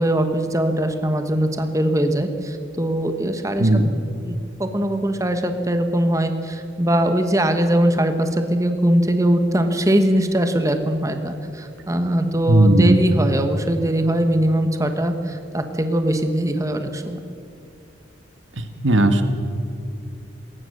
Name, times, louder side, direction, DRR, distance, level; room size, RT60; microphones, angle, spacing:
voice 1, 0.0-3.8 4.3-17.2, right 1 dB, 15° right, 7 dB, 1.2 m, -21 dB
voice 2, 3.6-4.0 12.5-13.0 18.8-19.2, right 1 dB, 80° right, 7 dB, 1.7 m, -15 dB
21.0 x 19.0 x 6.7 m, 2.6 s
head